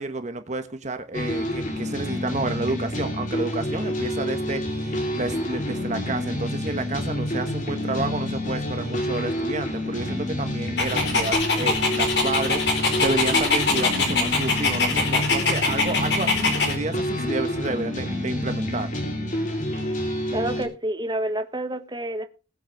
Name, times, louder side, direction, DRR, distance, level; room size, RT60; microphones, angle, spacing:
voice 1, 0.0-18.9, right 2 dB, 40° right, 1.2 m, -30 dB
sound 1, 1.1-20.6, left 1 dB, 45° left, 3.8 m, -28 dB
Dog, 10.8-16.7, left 4 dB, 65° left, 4.6 m, -23 dB
voice 2, 20.3-22.3, right 1 dB, 25° right, 1.4 m, -28 dB
20.5 x 8.1 x 3.5 m
head